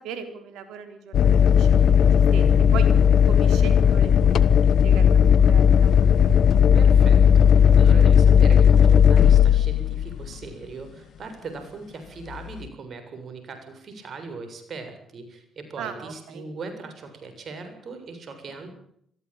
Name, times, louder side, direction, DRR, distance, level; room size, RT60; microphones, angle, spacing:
voice 1, 0.0-1.8 2.3-2.9 3.3-5.2 5.5-6.0 15.8-16.4, right 7 dB, 75° right, 8 dB, 3.7 m, -38 dB
sound 1, 1.1-10.3 12.3-12.7, left 8 dB, 65° left, 1.2 m, -16 dB
voice 2, 6.7-18.7, right 4 dB, 55° right, 8 dB, 7.4 m, -39 dB
22.5 x 15.5 x 9.0 m, 0.69 s
hypercardioid pair, 50°, 0 cm